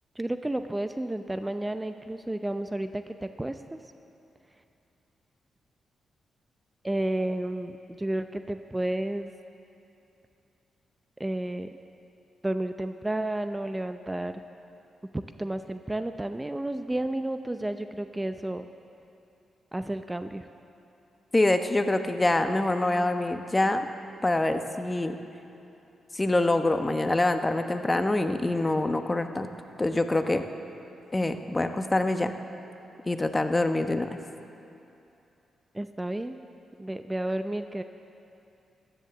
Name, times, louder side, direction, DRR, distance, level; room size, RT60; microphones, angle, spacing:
voice 1, 0.2-3.8 6.8-9.3 11.2-11.8 12.4-14.4 15.1-18.7 19.7-20.5 35.7-36.4 36.8-37.8, right 1 dB, 15° right, 9 dB, 0.6 m, -31 dB
voice 2, 21.3-23.8 24.2-25.2 26.1-29.5 29.8-30.4 31.1-32.3 33.1-34.2, left 2 dB, 25° left, 8 dB, 1.0 m, -25 dB
14.0 x 10.5 x 7.0 m, 2.8 s
hypercardioid pair, 45°, 0 cm